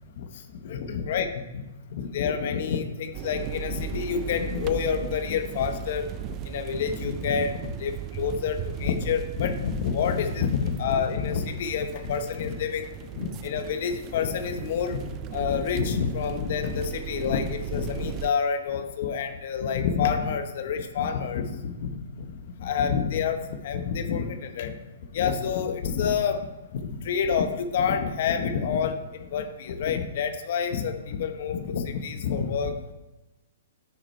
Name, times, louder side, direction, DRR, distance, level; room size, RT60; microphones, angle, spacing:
voice 1, 0.6-1.3 1.5-1.6 1.9-6.1 6.4-12.8 13.1-15.0 15.3-23.4 23.6-24.8 25.1-26.5 26.7-32.7, left 7 dB, 60° left, 7 dB, 1.0 m, -28 dB
sound 1, 3.1-18.3, right 11 dB, 30° right, 0.4 m, -37 dB
9.5 x 5.0 x 4.4 m, 1.1 s
hypercardioid pair, 135°, 0 cm